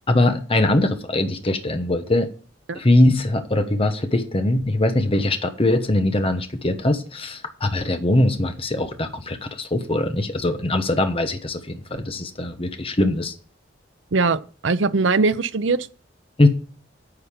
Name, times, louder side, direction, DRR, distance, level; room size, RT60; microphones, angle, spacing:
voice 1, 0.1-2.3 2.7-13.3 16.4-16.5, left 1 dB, 30° left, 1.0 m, -21 dB
voice 2, 14.1-15.8, right 4 dB, 75° right, 0.7 m, -21 dB
9.8 x 5.5 x 8.4 m
head